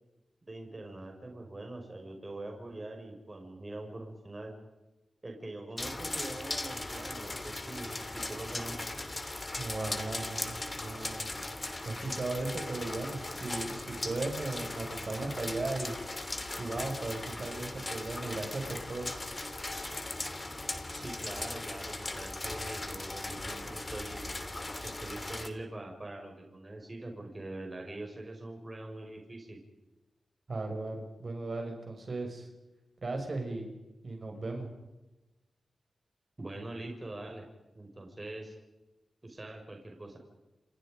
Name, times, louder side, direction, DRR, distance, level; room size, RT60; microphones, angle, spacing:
voice 1, 0.4-4.5 5.2-8.9 20.9-24.2 24.8-29.6 36.4-37.5 37.8-38.6 39.2-40.2, right 2 dB, 30° right, 2 dB, 5.7 m, -43 dB
sound 1, 5.8-25.5, left 2 dB, 30° left, 3.2 m, -38 dB
voice 2, 9.6-11.3 11.8-15.9 16.6-19.1 30.5-32.5 33.0-33.6 34.0-34.7, right 2 dB, 50° right, 3 dB, 6.3 m, -36 dB
29.0 x 27.5 x 5.2 m, 1.0 s
cardioid pair, 70°, 0 cm